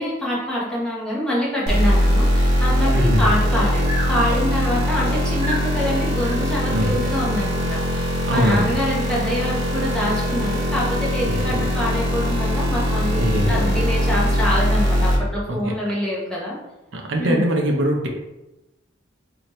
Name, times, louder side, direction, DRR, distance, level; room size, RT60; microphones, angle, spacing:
voice 1, 0.0-8.0 8.3-16.6 17.2-17.5, left 1 dB, 5° left, -6 dB, 1.0 m, -25 dB
sound 1, 1.7-15.2, equal, 55° right, 1.0 m, -21 dB
Breathing, 2.7-6.4, right 1 dB, 35° right, 1.3 m, -32 dB
voice 2, 8.3-8.7 11.3-11.6 13.2-13.8 15.5-15.7 16.9-18.1, equal, 70° right, 1 dB, 0.7 m, -22 dB
4.3 x 2.7 x 3.1 m, 0.97 s
head